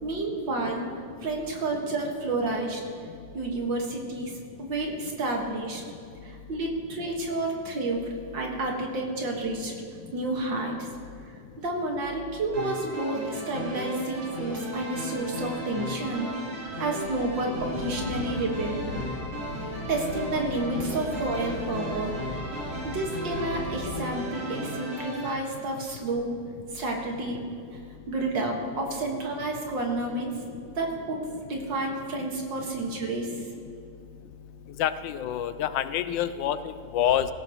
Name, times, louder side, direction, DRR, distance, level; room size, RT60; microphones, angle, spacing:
voice 1, 0.0-0.9 1.2-2.8 3.3-5.8 6.2-9.8 10.1-10.9 11.6-18.8 19.9-22.1 22.8-26.4 26.7-27.8 28.1-30.4 30.8-33.4, right 2 dB, 90° right, 0 dB, 2.4 m, -30 dB
sound 1, 12.5-25.3, right 1 dB, 75° right, 4.8 m, -36 dB
sound 2, 17.5-24.0, left 2 dB, 50° left, 3.5 m, -38 dB
voice 2, 34.8-37.3, left 10 dB, 85° left, 12 dB, 1.3 m, -27 dB
17.5 x 16.0 x 3.1 m, 2.5 s
omnidirectional pair, 2.0 m